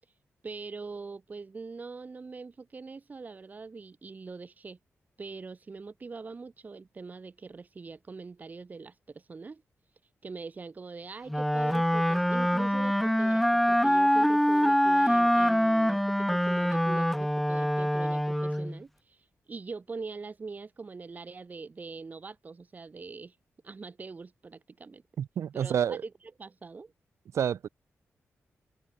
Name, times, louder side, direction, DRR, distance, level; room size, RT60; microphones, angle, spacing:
voice 1, 0.4-4.8 5.2-9.6 10.2-23.4 23.6-25.0 25.5-26.0 26.4-26.9, right 4 dB, 35° right, 3.0 m, -43 dB
Wind instrument woodwind instrument, 11.3-18.8, equal, ahead, 2.0 m, -25 dB
voice 2, 25.2-26.0 27.3-27.7, right 8 dB, 85° right, 6.3 m, -29 dB
wide cardioid pair, 125°, 5 cm